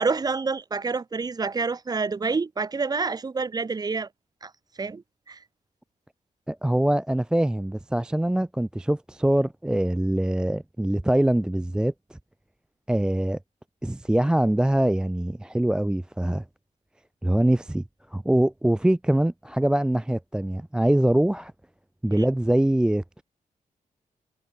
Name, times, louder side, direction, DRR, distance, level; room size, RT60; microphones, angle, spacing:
voice 1, 0.0-4.1 4.4-4.5 4.8-5.4 22.1-22.3, right 4 dB, 30° right, 1.3 m, -28 dB
voice 2, 6.5-12.2 12.9-13.4 13.8-16.4 17.2-17.8 18.1-21.5 22.0-23.2, right 1 dB, 5° right, 0.4 m, -23 dB
wide cardioid pair, 145°, 14 cm